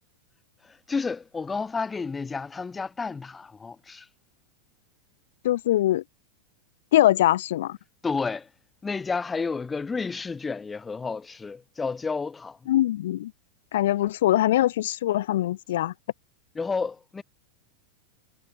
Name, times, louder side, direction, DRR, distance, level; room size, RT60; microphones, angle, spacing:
voice 1, 0.6-4.1 8.0-8.5 8.8-12.6 16.5-17.2, left 4 dB, 15° left, 1.2 m, -31 dB
voice 2, 5.4-6.0 6.9-7.8 12.7-13.3 13.7-15.9, left 13 dB, 55° left, 1.0 m, -22 dB
figure-of-eight pair, 90°, 0 cm